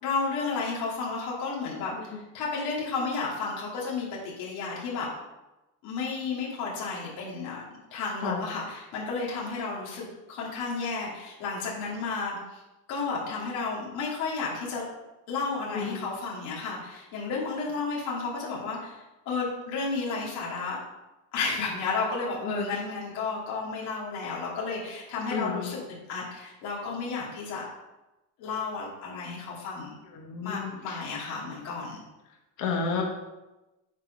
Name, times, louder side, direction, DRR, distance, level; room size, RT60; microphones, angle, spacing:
voice 1, 0.0-5.1 5.8-7.6 7.9-12.6 12.9-14.8 15.3-20.8 21.3-27.6 28.4-30.0 30.4-32.0, left 4 dB, 65° left, -5 dB, 2.7 m, -32 dB
voice 2, 15.7-16.0 22.4-22.7 25.3-25.7 30.1-31.0 32.6-33.0, left 5 dB, 45° left, 1 dB, 1.1 m, -31 dB
7.5 x 4.5 x 5.2 m, 1.0 s
cardioid pair, 175°, 41 cm